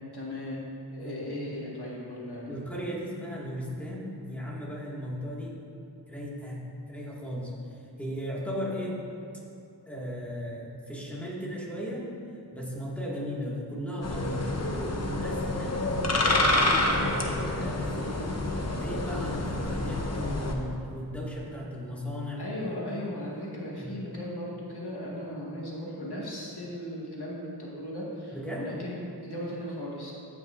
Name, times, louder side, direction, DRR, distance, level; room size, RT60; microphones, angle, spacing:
voice 1, 0.1-0.6 0.9-2.8 22.4-30.1, left 1 dB, 70° left, -5 dB, 1.9 m, -37 dB
voice 2, 1.0-1.4 2.5-5.6 6.1-6.6 6.9-9.0 9.9-12.1 12.5-14.5 14.9-18.4 18.7-22.4 23.8-24.0 28.3-28.8, equal, 5° left, -5 dB, 2.1 m, -36 dB
sound 1, 14.0-20.6, left 2 dB, 40° left, 0.9 m, -28 dB
15.5 x 6.0 x 2.6 m, 2.7 s
wide cardioid pair, 45°, 40 cm